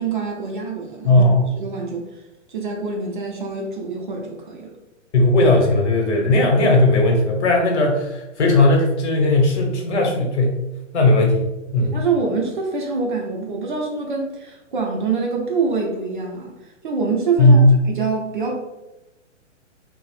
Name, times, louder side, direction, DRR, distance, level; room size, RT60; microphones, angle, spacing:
voice 1, 0.0-1.3 1.6-2.1 2.5-4.8 11.8-16.5 16.8-18.6, right 4 dB, 45° right, 0 dB, 0.5 m, -25 dB
voice 2, 1.0-1.4 5.1-10.6 10.9-11.4 11.7-12.0 17.4-17.7, left 2 dB, 65° left, 1 dB, 0.9 m, -16 dB
2.8 x 2.0 x 3.0 m, 0.98 s
hypercardioid pair, 165°, 37 cm